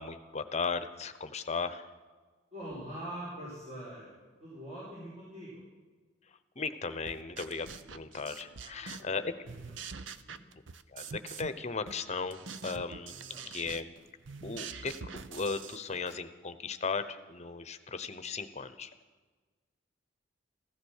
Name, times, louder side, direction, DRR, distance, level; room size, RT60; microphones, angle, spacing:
voice 1, 0.0-1.9 6.6-9.3 10.9-13.9 14.4-18.9, left 4 dB, 35° left, 11 dB, 0.9 m, -36 dB
voice 2, 2.5-5.6 8.6-9.1 9.4-9.8 10.1-10.4 13.1-13.4 14.5-14.7, right 1 dB, 35° right, -6 dB, 4.8 m, -44 dB
sound 1, 7.1-9.2 9.4-11.6 11.9-16.2, right 5 dB, 80° right, 0.7 m, -45 dB
15.5 x 14.0 x 6.5 m, 1.4 s
head